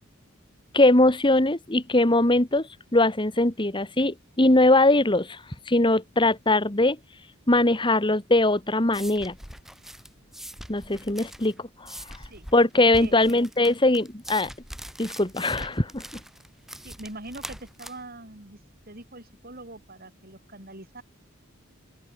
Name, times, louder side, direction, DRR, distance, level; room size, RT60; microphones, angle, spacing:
voice 1, 0.7-5.4 5.7-7.0 7.5-9.4 10.7-11.9 12.5-14.5 15.0-16.0, left 2 dB, 25° left, 1.9 m, -21 dB
sound 1, 8.4-19.8, equal, ahead, 4.3 m, -43 dB
voice 2, 12.9-13.4 16.8-18.6 18.9-21.0, right 2 dB, 45° right, 6.3 m, -43 dB
open air
head